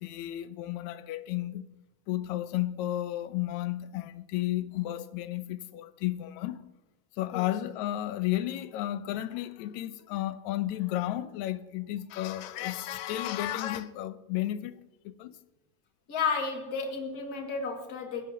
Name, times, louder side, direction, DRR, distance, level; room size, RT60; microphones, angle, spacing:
voice 1, 0.0-1.7 2.1-6.6 7.2-14.7 15.1-15.4, left 14 dB, 75° left, 1.8 m, -33 dB
voice 2, 16.1-18.2, left 5 dB, 35° left, 2.0 m, -32 dB
20.5 x 16.5 x 2.8 m
omnidirectional pair, 3.6 m